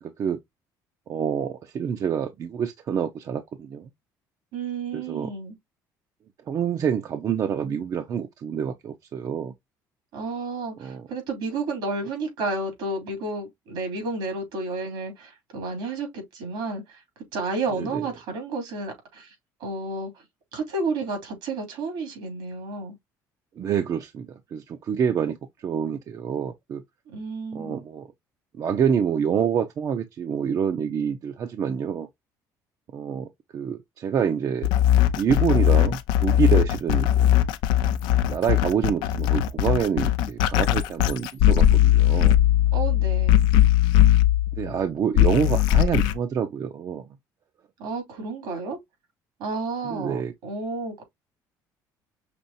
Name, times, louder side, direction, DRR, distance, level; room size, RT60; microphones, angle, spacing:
voice 1, 0.0-0.4 1.1-3.9 4.9-5.3 6.5-9.5 10.8-11.1 17.8-18.1 23.6-26.8 27.5-28.1 28.6-32.1 32.9-34.7 35.2-37.3 38.3-42.4 44.5-47.2 49.8-50.3, right 7 dB, 50° right, 0.7 m, -27 dB
voice 2, 4.5-5.5 10.1-17.0 17.3-19.3 19.6-20.1 20.5-23.0 27.1-27.8 42.7-43.4 47.8-48.8 49.4-51.0, right 3 dB, 85° right, 3.0 m, -31 dB
sound 1, 34.6-44.7 45.2-46.1, left 12 dB, 90° left, 0.5 m, -19 dB
6.0 x 3.1 x 2.7 m
cardioid pair, 110°, 8 cm